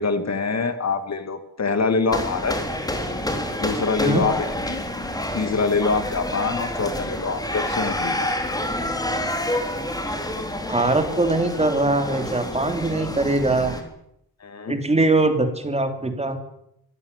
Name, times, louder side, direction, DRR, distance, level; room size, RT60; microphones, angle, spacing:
voice 1, 0.0-2.6 3.6-4.8 5.3-8.3 14.4-14.8, left 4 dB, 45° left, 10 dB, 2.0 m, -25 dB
sound 1, 2.1-13.8, left 1 dB, 10° left, 3.8 m, -28 dB
voice 2, 10.7-13.7 14.7-16.4, right 2 dB, 15° right, 7 dB, 3.3 m, -21 dB
24.5 x 16.5 x 9.7 m, 0.76 s
wide cardioid pair, 170°, 37 cm